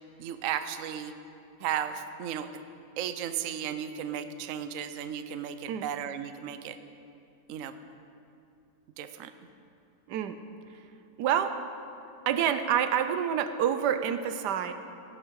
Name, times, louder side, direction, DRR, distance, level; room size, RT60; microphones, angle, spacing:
voice 1, 0.2-1.1 1.6-2.5 3.0-6.8 7.5-7.8 9.0-9.3, right 9 dB, 65° right, 10 dB, 0.9 m, -34 dB
voice 2, 10.1-10.4 11.2-11.6 12.3-14.7, right 9 dB, 80° right, 10 dB, 1.3 m, -27 dB
17.0 x 9.9 x 4.7 m, 2.6 s
omnidirectional pair, 1.8 m